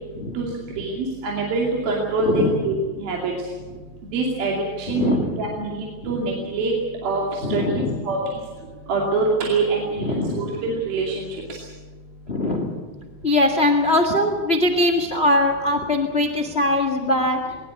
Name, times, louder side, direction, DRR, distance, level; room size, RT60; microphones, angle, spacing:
voice 1, 0.8-3.3 4.1-6.7 7.0-7.6 8.0-8.2 8.9-11.2 11.5-11.6, right 3 dB, 70° right, -2 dB, 4.4 m, -24 dB
voice 2, 2.2-2.6 4.9-5.4 6.0-6.1 7.4-8.0 10.0-10.5 12.3-12.7 13.2-17.4, left 1 dB, 40° left, 5 dB, 0.8 m, -21 dB
21.5 x 19.5 x 8.2 m, 1.4 s
omnidirectional pair, 4.4 m